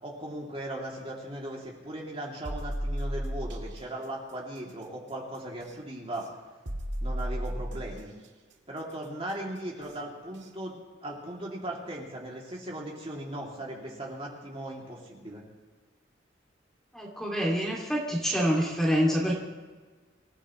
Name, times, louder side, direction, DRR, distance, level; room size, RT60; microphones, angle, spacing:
voice 1, 0.0-6.3 7.0-8.1 8.7-15.4, right 1 dB, 30° right, -3 dB, 3.0 m, -38 dB
sound 1, 2.4-3.7 5.6-5.7 6.7-8.0 9.8-9.9 10.4-10.5, equal, 65° right, 2.1 m, -33 dB
voice 2, 16.9-19.3, equal, ahead, -3 dB, 2.8 m, -26 dB
26.0 x 16.0 x 3.3 m, 1.4 s
head